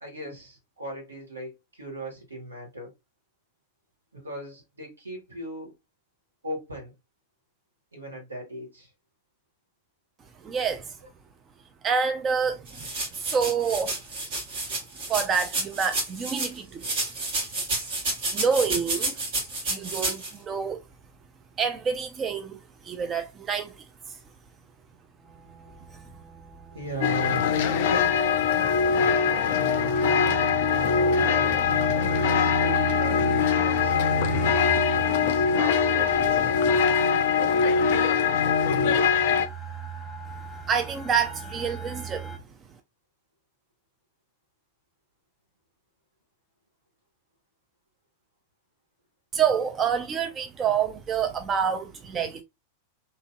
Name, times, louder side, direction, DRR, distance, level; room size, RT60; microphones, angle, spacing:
voice 1, 0.0-2.9 4.1-5.7 6.4-6.9 7.9-8.9 26.7-28.2 28.5-29.9 31.1-31.6 32.4-34.5 35.0-36.6 37.4-38.1, right 1 dB, 75° right, 1.2 m, -38 dB
voice 2, 10.4-11.0 11.8-14.0 15.1-16.9 18.3-19.2 19.6-20.8 21.6-24.2 25.9-26.0 40.7-42.4 49.3-52.4, right 6 dB, 25° right, 0.3 m, -27 dB
sound 1, 12.7-16.5 16.8-20.3, right 2 dB, 50° right, 1.3 m, -30 dB
sound 2, 25.2-42.4, right 8 dB, 5° right, 1.3 m, -37 dB
sound 3, 27.0-39.5, left 6 dB, 50° left, 0.4 m, -22 dB
2.9 x 2.6 x 2.3 m
figure-of-eight pair, 90°, 0 cm